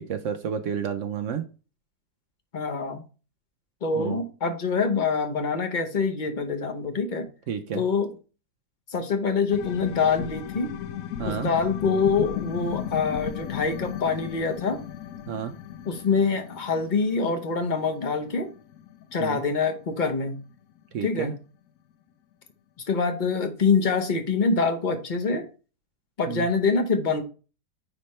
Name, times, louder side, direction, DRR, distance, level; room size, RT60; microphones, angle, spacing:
voice 1, 0.0-1.4 3.9-4.2 7.5-7.8 11.2-11.5 15.3-15.5 19.2-19.4 20.9-21.3 26.3-26.5, right 8 dB, 65° right, 7 dB, 0.8 m, -30 dB
voice 2, 2.5-3.0 3.8-7.3 7.7-8.1 8.9-10.7 11.2-14.8 15.9-18.5 19.1-20.4 21.0-21.3 22.9-25.4 26.2-27.2, left 4 dB, 35° left, 5 dB, 0.8 m, -25 dB
sound 1, 9.5-20.8 21.2-21.3, left 10 dB, 70° left, 0.8 m, -36 dB
9.5 x 3.2 x 4.3 m, 0.35 s
omnidirectional pair, 1.8 m